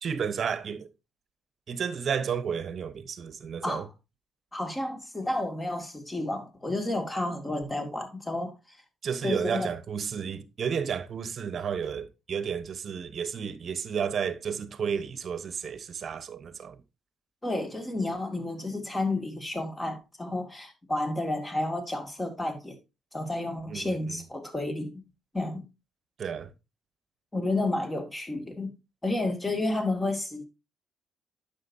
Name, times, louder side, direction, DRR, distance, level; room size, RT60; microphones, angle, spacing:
voice 1, 0.0-0.9 1.7-3.9 9.0-16.8 23.7-24.2 26.2-26.5, right 7 dB, 55° right, 0.9 m, -32 dB
voice 2, 4.5-8.8 9.2-9.7 17.4-22.8 23.1-24.9 25.3-25.6 27.3-28.7 29.0-30.4, left 2 dB, 20° left, 2.1 m, -31 dB
9.5 x 6.8 x 2.7 m
cardioid pair, 80°, 0 cm